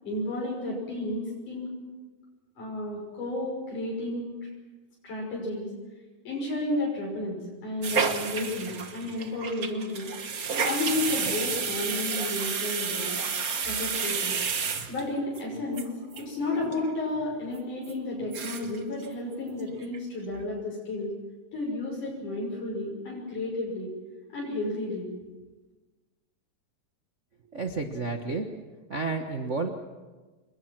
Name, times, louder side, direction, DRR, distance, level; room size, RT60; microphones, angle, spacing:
voice 1, 0.0-1.7 2.6-4.3 5.0-5.7 6.3-10.1 10.6-13.1 13.7-14.3 14.9-15.9 16.2-21.1 21.5-23.9 24.3-25.1, left 2 dB, 75° left, -3 dB, 7.5 m, -32 dB
sound 1, 7.8-15.4 15.8-15.9 16.1-16.2 16.5-16.9 17.2-17.3 17.8-17.9 18.2-18.8 19.0-19.1 19.5-20.0 20.3-20.4, right 5 dB, 50° right, 1.0 m, -31 dB
voice 2, 27.5-28.5 28.9-29.7, right 3 dB, 80° right, 3 dB, 0.6 m, -31 dB
28.0 x 21.5 x 6.2 m, 1.3 s
omnidirectional pair, 3.6 m